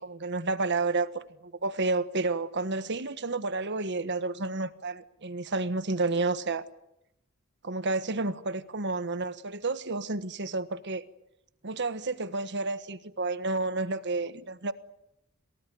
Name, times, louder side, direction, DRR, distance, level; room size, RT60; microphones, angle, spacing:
voice 1, 0.0-6.6 7.6-11.0 11.6-14.7, right 3 dB, 55° right, 1.4 m, -30 dB
28.5 x 19.5 x 9.5 m
head